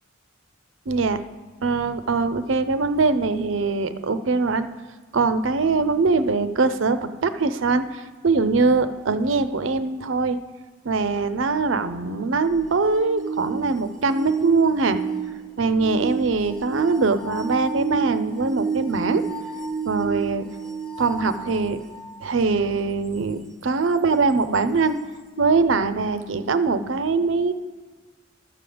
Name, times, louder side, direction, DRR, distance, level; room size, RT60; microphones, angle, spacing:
voice 1, 0.9-1.2 1.6-4.7 5.1-10.4 10.8-15.0 15.6-19.2 19.9-20.5 21.0-21.8 22.2-24.9 25.4-27.5, right 4 dB, 75° right, 11 dB, 0.6 m, -22 dB
sound 1, 12.5-22.2 24.5-24.6, right 5 dB, ahead, 0.7 m, -30 dB
12.5 x 5.0 x 7.8 m, 1.4 s
head